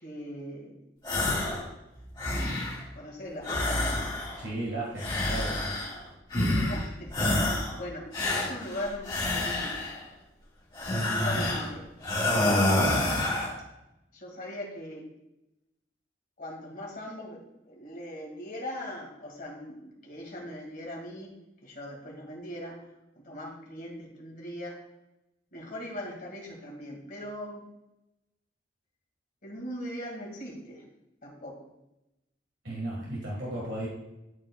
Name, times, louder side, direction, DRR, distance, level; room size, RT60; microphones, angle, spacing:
voice 1, 0.0-0.8 2.9-4.0 5.1-5.6 6.5-9.8 11.0-13.2 14.1-15.1 16.4-21.3 21.6-22.8 23.2-24.8 25.5-27.6 29.4-30.8 31.2-31.6, equal, 50° left, -1 dB, 2.1 m, -40 dB
sound 1, 1.0-1.6 2.0-2.8 3.4-4.5 5.0-6.0 6.3-6.8 7.1-7.8 8.1-10.0 10.7-11.7 12.0-13.5, left 1 dB, 25° left, 2.2 m, -28 dB
voice 2, 4.4-5.8 32.6-33.9, right 1 dB, 85° right, -5 dB, 1.8 m, -35 dB
12.0 x 4.5 x 2.3 m, 0.91 s
head